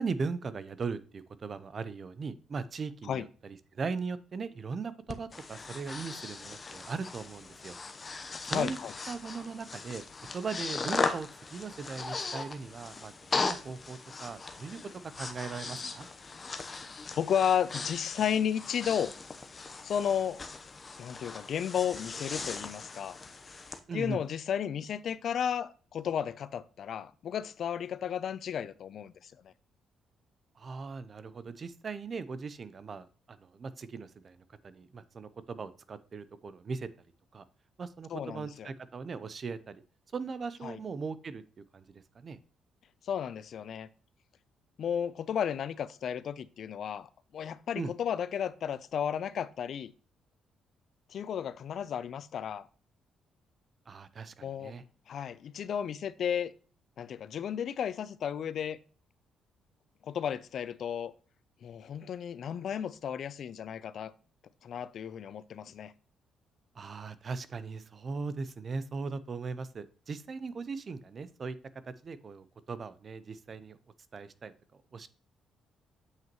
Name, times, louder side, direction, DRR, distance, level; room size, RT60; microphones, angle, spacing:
voice 1, 0.0-7.8 8.4-8.8 9.1-10.0 10.3-14.8 15.2-16.1 23.9-24.2 30.6-34.4 34.6-36.9 37.3-37.5 37.8-39.8 40.1-41.4 41.7-42.4 47.7-47.9 53.9-54.8 66.7-71.6 71.8-73.8 74.1-75.1, right 4 dB, 45° right, 0.6 m, -39 dB
Breathing, 5.1-23.8, left 4 dB, 30° left, 0.8 m, -38 dB
voice 2, 8.5-8.9 17.2-19.1 19.8-20.4 21.0-23.2 23.9-29.5 38.1-38.7 40.6-40.8 43.0-43.9 44.8-49.9 51.1-52.7 54.4-54.7 55.1-56.5 57.0-58.8 60.0-61.1 61.6-64.1 64.6-65.9, left 8 dB, 65° left, 0.5 m, -33 dB
7.6 x 6.0 x 3.0 m
cardioid pair, 90°, 0 cm